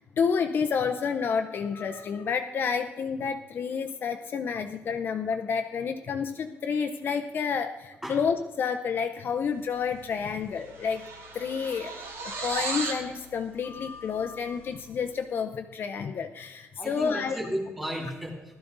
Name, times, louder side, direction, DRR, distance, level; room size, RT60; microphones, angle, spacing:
voice 1, 0.2-11.0 11.3-11.9 12.4-17.4, left 6 dB, 45° left, 5 dB, 0.7 m, -29 dB
sound 1, 9.9-10.1 10.4-13.1, right 3 dB, 70° right, 2.9 m, -35 dB
voice 2, 16.8-18.6, equal, 5° right, 0 dB, 3.0 m, -34 dB
16.0 x 12.5 x 4.0 m, 1.1 s
cardioid pair, 175°, 5 cm